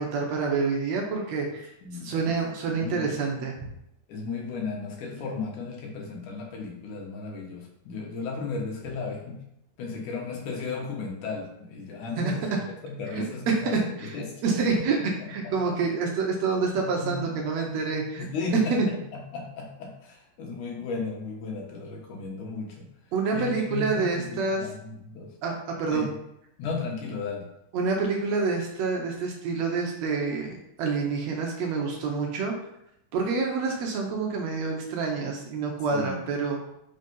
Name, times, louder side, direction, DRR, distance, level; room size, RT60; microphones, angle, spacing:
voice 1, 0.0-1.7 2.0-3.7 12.2-12.3 13.1-13.2 13.6-14.1 14.4-15.0 15.3-18.3 18.7-18.9 23.1-24.7 25.4-26.1 27.7-32.5 33.1-36.7, right 4 dB, 70° right, 1 dB, 1.8 m, -27 dB
voice 2, 1.8-2.4 2.7-3.3 4.1-9.4 9.8-12.4 12.8-15.7 17.0-17.4 18.1-22.9 23.3-25.3 25.9-26.1 26.6-27.5 35.9-36.2, left 4 dB, 75° left, -1 dB, 2.7 m, -35 dB
5.5 x 4.0 x 5.4 m, 0.79 s
omnidirectional pair, 3.7 m